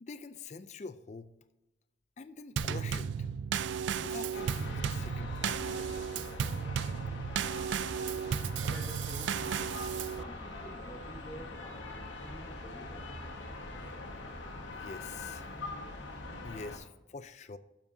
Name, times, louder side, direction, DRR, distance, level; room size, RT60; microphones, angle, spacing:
voice 1, 0.0-1.3 2.2-3.3 3.9-6.1 14.7-15.5 16.4-17.6, left 4 dB, 40° left, 12 dB, 0.4 m, -45 dB
Drum kit / Snare drum / Bass drum, 2.6-10.2, right 7 dB, 80° right, 0.4 m, -34 dB
sound 1, 4.3-16.8, left 2 dB, 85° left, 1.6 m, -43 dB
voice 2, 7.2-7.6 8.6-13.2, right 1 dB, 15° left, -3 dB, 1.2 m, -49 dB
12.0 x 7.0 x 2.7 m, 0.96 s
head